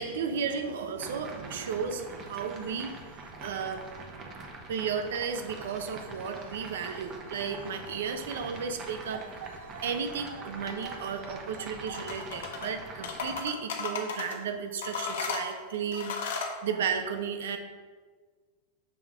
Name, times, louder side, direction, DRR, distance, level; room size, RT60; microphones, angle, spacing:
voice 1, 0.0-3.8 4.7-17.6, right 6 dB, 85° right, 7 dB, 0.7 m, -34 dB
sound 1, 1.0-13.4, right 3 dB, 20° right, 0.7 m, -44 dB
sound 2, 11.9-12.7 13.0-14.4 14.8-16.6, left 5 dB, 75° left, 1.0 m, -35 dB
6.9 x 5.2 x 3.6 m, 1.5 s
supercardioid pair, 170°, 0 cm